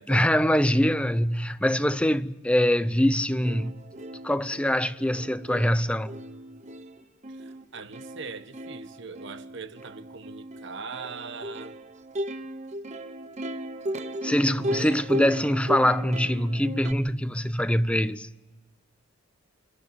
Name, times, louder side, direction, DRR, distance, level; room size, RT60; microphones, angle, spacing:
voice 1, 0.1-3.8 4.2-6.2 14.2-18.3, equal, 5° left, 0.7 m, -24 dB
Plucked string instrument, 3.0-3.1 3.4-16.9, equal, 35° right, 1.0 m, -36 dB
voice 2, 7.3-11.8, right 5 dB, 60° right, 1.3 m, -41 dB
28.0 x 12.0 x 9.1 m
head